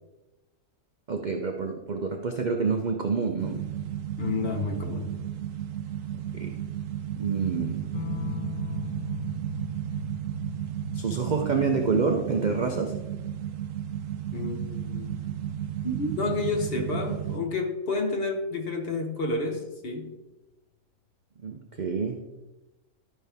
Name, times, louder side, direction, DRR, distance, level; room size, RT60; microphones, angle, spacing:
voice 1, 1.1-3.6 6.3-6.6 7.2-7.8 10.9-12.9 21.4-22.2, right 5 dB, 50° right, 3 dB, 0.5 m, -27 dB
sound 1, 3.4-17.4, right 10 dB, 85° right, 1.2 m, -33 dB
voice 2, 4.2-5.1 14.3-15.2 15.8-20.1, left 3 dB, 45° left, 4 dB, 1.1 m, -30 dB
sound 2, 7.9-17.0 18.4-19.0, left 10 dB, 85° left, 1.3 m, -42 dB
12.5 x 5.5 x 3.4 m, 1.0 s
omnidirectional pair, 1.6 m